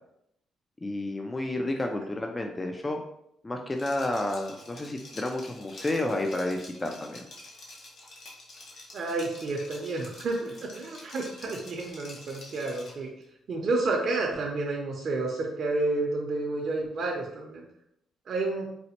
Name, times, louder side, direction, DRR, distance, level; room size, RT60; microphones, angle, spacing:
voice 1, 0.8-3.0 3.4-7.3, left 1 dB, 20° left, 3 dB, 0.4 m, -31 dB
Liquid, 3.7-13.0, left 2 dB, 60° left, 0.9 m, -48 dB
voice 2, 8.9-13.1 13.5-17.6 18.3-18.7, right 2 dB, 55° right, -1 dB, 0.6 m, -30 dB
4.0 x 2.1 x 2.9 m, 0.76 s
cardioid pair, 90°, 0 cm